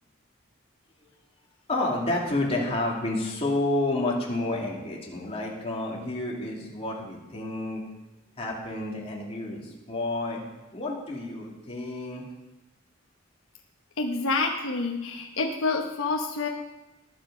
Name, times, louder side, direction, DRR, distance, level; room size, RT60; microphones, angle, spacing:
voice 1, 1.7-7.8 8.4-10.4 10.7-12.2, left 2 dB, 30° left, -3 dB, 2.9 m, -30 dB
voice 2, 14.0-16.5, left 3 dB, 80° left, 1 dB, 1.1 m, -28 dB
18.5 x 7.9 x 5.0 m, 1.0 s
head